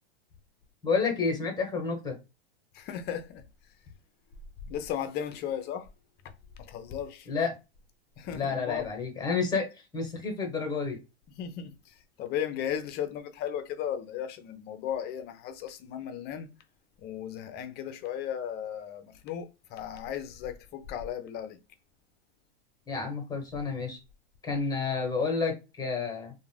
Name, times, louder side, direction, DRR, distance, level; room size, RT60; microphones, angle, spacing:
voice 1, 0.8-2.2 7.3-7.6 8.3-11.0 22.9-24.0 24.4-26.3, left 4 dB, 10° left, 1.1 m, -30 dB
voice 2, 2.7-3.4 4.7-5.9 6.2-6.3 6.6-7.3 8.2-8.9 11.4-16.5 17.0-21.6, left 9 dB, 30° left, 0.5 m, -36 dB
2.4 x 2.2 x 3.2 m
hypercardioid pair, 115°, 32 cm